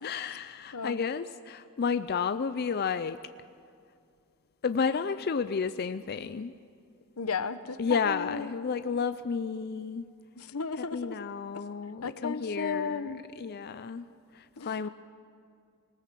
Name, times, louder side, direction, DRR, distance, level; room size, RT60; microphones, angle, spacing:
voice 1, 0.0-3.2 4.6-6.5 7.8-10.1 10.9-14.1 14.3-14.9, left 5 dB, 45° left, 12 dB, 0.4 m, -31 dB
voice 2, 7.2-8.5 10.4-11.2 11.5-11.6 12.0-13.2 14.6-14.7, left 5 dB, 85° left, 12 dB, 0.9 m, -34 dB
21.0 x 19.0 x 7.5 m, 2.4 s
head